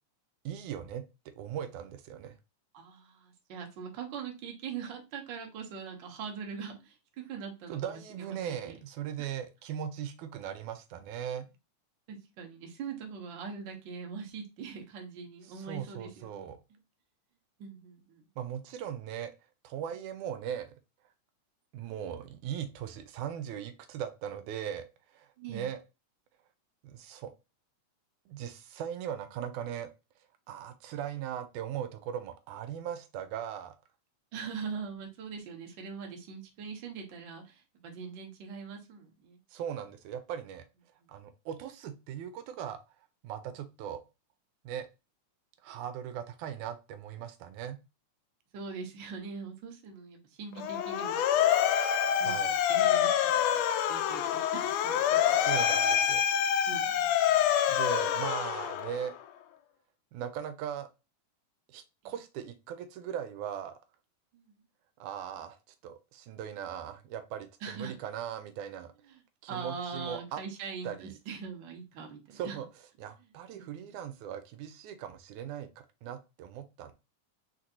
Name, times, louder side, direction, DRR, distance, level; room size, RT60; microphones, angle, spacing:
voice 1, 0.5-1.0 1.4-2.4 7.7-11.5 15.4-16.6 18.4-19.3 19.6-20.7 21.7-25.8 26.8-27.3 28.3-29.9 30.5-33.8 39.5-40.7 41.1-42.8 43.2-44.0 44.6-44.9 45.6-47.8 52.2-52.6 55.3-56.2 57.7-59.2 60.1-60.9 61.7-63.8 65.0-65.6 65.8-68.9 69.4-70.4 70.8-71.2 72.3-72.7 73.0-76.9, right 9 dB, 85° right, 9 dB, 2.1 m, -39 dB
voice 2, 2.7-8.8 12.1-16.5 17.6-18.2 25.4-25.7 34.3-39.4 41.0-41.1 48.5-51.6 52.1-54.2 54.5-55.4 56.7-57.4 62.0-62.1 64.3-64.6 67.6-68.0 69.1-69.2 69.5-72.6 73.5-73.9, right 6 dB, 55° right, 2 dB, 1.4 m, -42 dB
Motor vehicle (road) / Siren, 50.6-59.2, left 9 dB, 80° left, 1.5 m, -27 dB
4.5 x 4.4 x 2.6 m, 0.27 s
omnidirectional pair, 3.5 m